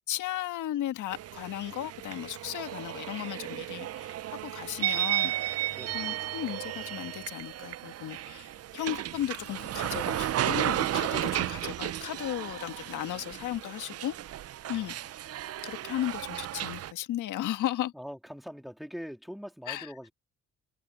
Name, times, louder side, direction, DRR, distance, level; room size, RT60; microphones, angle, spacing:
voice 1, 0.1-5.3 5.9-14.1 14.7-14.9 15.6-17.9 19.7-19.9, left 13 dB, 80° left, 1.7 m, -35 dB
sound 1, 1.1-16.9, right 12 dB, 55° right, 0.6 m, -34 dB
voice 2, 5.7-6.1 14.7-15.1 17.9-20.1, equal, ahead, 3.4 m, -43 dB
cardioid pair, 90°, 30 cm